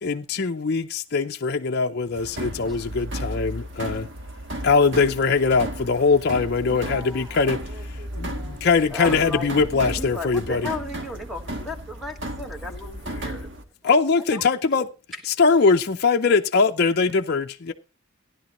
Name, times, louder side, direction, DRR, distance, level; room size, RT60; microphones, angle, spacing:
voice 1, 0.0-4.1 4.6-7.6 8.2-10.7 12.6-12.8 13.1-13.3 13.8-14.8 15.3-17.7, left 4 dB, 50° left, 0.5 m, -21 dB
sound 1, 2.1-13.6, right 1 dB, 55° right, 1.4 m, -34 dB
voice 2, 6.7-8.7 13.8-14.6, equal, 25° right, 2.8 m, -44 dB
voice 3, 8.9-9.5 10.0-13.5, left 2 dB, ahead, 1.5 m, -34 dB
15.5 x 10.5 x 3.0 m
head